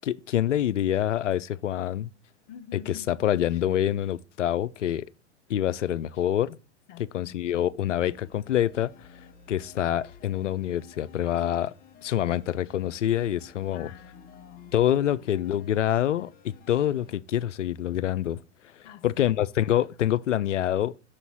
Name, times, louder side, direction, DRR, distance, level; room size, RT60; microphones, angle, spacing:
voice 1, 0.0-2.1 2.9-5.1 5.5-6.6 7.1-8.9 9.5-11.7 12.0-13.9 14.7-18.4 19.0-20.9, left 11 dB, 90° left, 0.5 m, -26 dB
voice 2, 2.5-3.1 6.9-7.4 13.6-14.8 18.8-19.5, left 9 dB, 50° left, 0.7 m, -47 dB
sound 1, 7.9-17.2, left 6 dB, 25° left, 0.9 m, -53 dB
6.3 x 3.9 x 6.0 m
hypercardioid pair, 100°, 36 cm